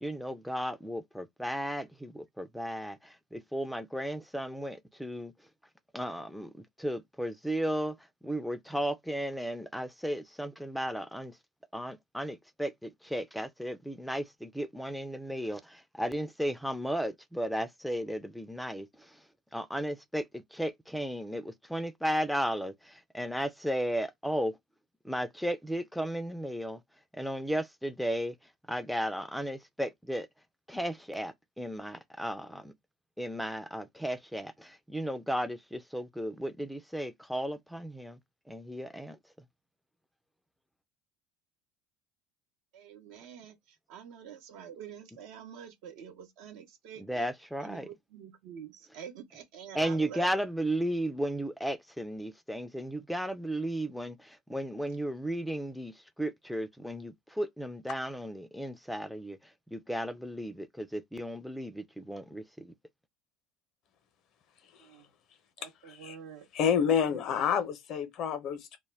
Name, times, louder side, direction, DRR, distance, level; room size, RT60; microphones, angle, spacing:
voice 1, 0.0-5.3 5.9-11.4 11.7-19.2 19.5-24.6 25.0-26.8 27.1-28.4 28.7-30.3 30.7-32.7 33.2-38.2 38.5-39.2 47.0-47.9 49.7-62.7, equal, ahead, 0.4 m, -35 dB
voice 2, 42.7-47.3 47.6-50.3 64.8-65.1 65.6-66.8 67.1-67.2, right 8 dB, 70° right, 0.7 m, -47 dB
voice 3, 66.5-68.8, left 7 dB, 55° left, 0.6 m, -28 dB
2.1 x 2.1 x 3.2 m
hypercardioid pair, 80°, 0 cm